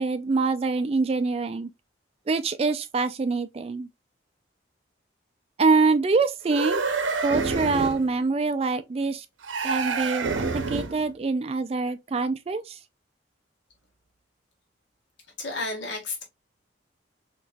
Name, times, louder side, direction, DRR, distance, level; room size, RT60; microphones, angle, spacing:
voice 1, 0.0-1.7 2.3-3.9 5.6-6.8 7.2-9.3 9.6-12.8, right 4 dB, 30° right, 0.3 m, -25 dB
sound 1, 6.5-8.1 9.4-11.1, right 4 dB, 80° right, 0.7 m, -27 dB
voice 2, 15.4-16.2, left 3 dB, 70° left, 1.6 m, -32 dB
4.1 x 3.0 x 2.2 m
head